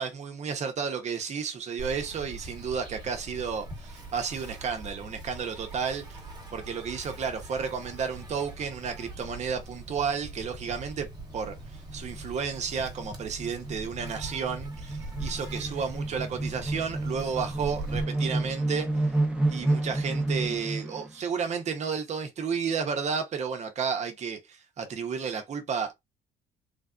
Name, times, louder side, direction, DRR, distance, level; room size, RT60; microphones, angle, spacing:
voice 1, 0.0-6.2 6.5-11.1 11.3-11.5 11.9-18.9 19.5-25.9, right 6 dB, 40° right, 0.8 m, -32 dB
Insect, 1.8-18.0, right 2 dB, 25° right, 1.2 m, -42 dB
sound 1, 10.7-10.8 11.1-11.2 11.5-21.1, right 2 dB, 5° right, 0.7 m, -31 dB
3.3 x 2.4 x 2.3 m
cardioid pair, 110°, 17 cm